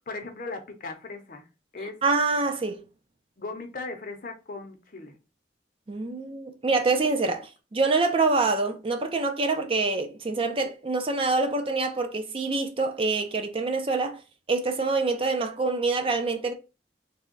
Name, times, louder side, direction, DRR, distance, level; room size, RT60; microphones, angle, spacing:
voice 1, 0.1-1.5 1.7-2.0 3.4-5.1, left 3 dB, 50° left, 0.7 m, -37 dB
voice 2, 2.0-2.8 5.9-14.2 14.5-16.5, right 3 dB, 30° right, 0.5 m, -26 dB
3.4 x 2.2 x 3.8 m
head